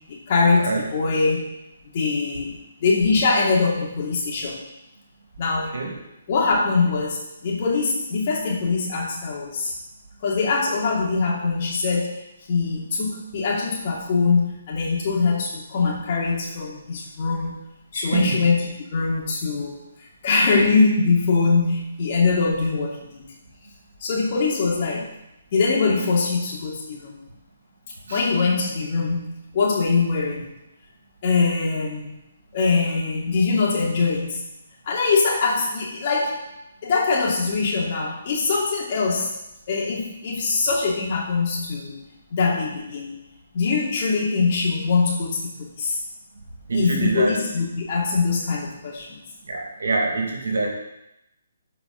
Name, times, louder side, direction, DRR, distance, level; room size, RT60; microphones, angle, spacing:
voice 1, 0.1-1.5 1.9-4.7 5.4-5.8 6.3-9.7 10.2-12.2 12.5-17.6 17.9-23.3 24.0-25.1 25.5-27.2 28.1-30.5 31.2-32.2 32.5-34.4 34.9-36.4 36.8-39.3 39.7-42.0 42.3-43.2 43.5-46.0 46.7-49.2, left 4 dB, 40° left, -3 dB, 2.6 m, -23 dB
voice 2, 17.9-18.4 28.1-28.2 46.7-47.4 49.5-50.7, right 3 dB, 65° right, 1 dB, 2.2 m, -25 dB
13.5 x 5.0 x 4.0 m, 0.88 s
figure-of-eight pair, 140°, 0 cm